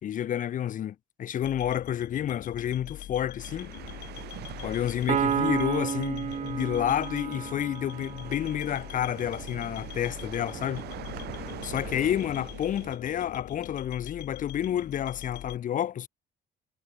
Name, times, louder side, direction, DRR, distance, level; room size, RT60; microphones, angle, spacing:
voice 1, 0.0-3.7 4.6-10.9 11.6-16.1, left 10 dB, 50° left, 1.1 m, -30 dB
sound 1, 1.4-15.6, left 14 dB, 70° left, 6.5 m, -43 dB
sound 2, 3.4-13.0, right 15 dB, 75° right, 4.2 m, -44 dB
Piano, 5.1-8.7, right 9 dB, 40° right, 1.0 m, -31 dB
cardioid pair, 110°, 17 cm